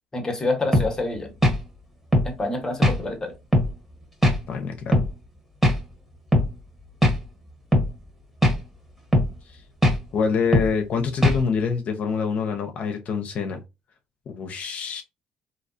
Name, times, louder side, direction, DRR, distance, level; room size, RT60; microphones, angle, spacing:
voice 1, 0.1-1.3 2.2-3.3, left 2 dB, 20° left, 1.2 m, -27 dB
sound 1, 0.7-0.9 1.4-1.6 2.1-2.3 2.8-3.0 3.5-3.7 4.2-4.4 4.9-5.1 5.6-5.8 6.3-6.5 7.0-7.2 7.7-7.9 8.4-8.6 9.1-9.3 9.8-10.0 10.5-10.7 11.2-11.4, equal, 5° right, 1.4 m, -19 dB
voice 2, 4.5-5.0 9.5-9.6 10.1-13.6 14.3-15.0, left 5 dB, 55° left, 0.8 m, -26 dB
3.1 x 2.8 x 2.7 m
supercardioid pair, 85°, 3 cm